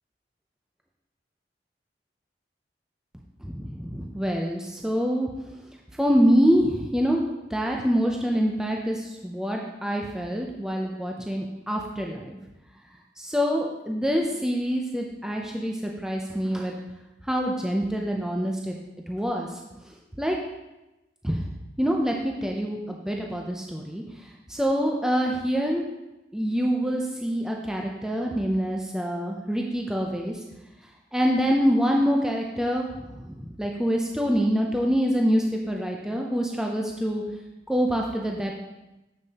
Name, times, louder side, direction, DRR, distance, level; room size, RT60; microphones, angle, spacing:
voice 1, 3.4-5.3 6.0-7.2 7.5-12.4 13.2-16.7 17.3-18.8 19.1-19.6 20.2-20.4 21.2-21.4 21.8-25.8 26.3-30.4 31.1-37.2 37.7-38.5, equal, 5° right, 0 dB, 0.4 m, -25 dB
7.2 x 6.4 x 2.8 m, 1.0 s
head